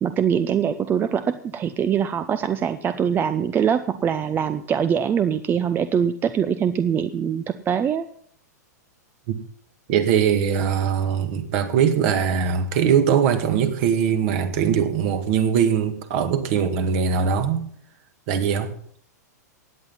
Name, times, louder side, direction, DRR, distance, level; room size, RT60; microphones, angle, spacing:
voice 1, 0.0-8.1, right 8 dB, 20° right, 12 dB, 0.6 m, -23 dB
voice 2, 9.9-17.7 18.3-18.7, right 7 dB, 50° right, 7 dB, 2.1 m, -21 dB
16.5 x 9.4 x 5.6 m, 0.63 s
hypercardioid pair, 110°, 9 cm